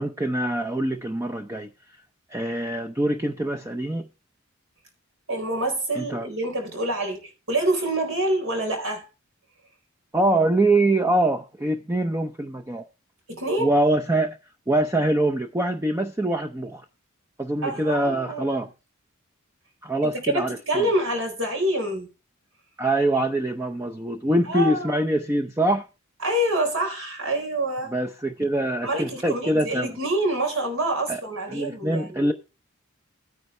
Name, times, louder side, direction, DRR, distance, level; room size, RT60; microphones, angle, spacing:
voice 1, 0.0-1.7 2.3-4.1 5.9-6.3 10.1-12.8 13.6-14.4 14.7-16.8 17.4-18.7 19.8-20.9 22.8-25.9 27.9-29.9 31.1-31.2 31.5-32.3, right 1 dB, 15° right, 0.6 m, -24 dB
voice 2, 5.3-9.0 13.3-13.7 17.6-18.6 20.0-22.1 24.4-25.0 26.2-27.9 28.8-32.3, right 1 dB, 70° right, 4.2 m, -26 dB
13.0 x 9.7 x 3.3 m
head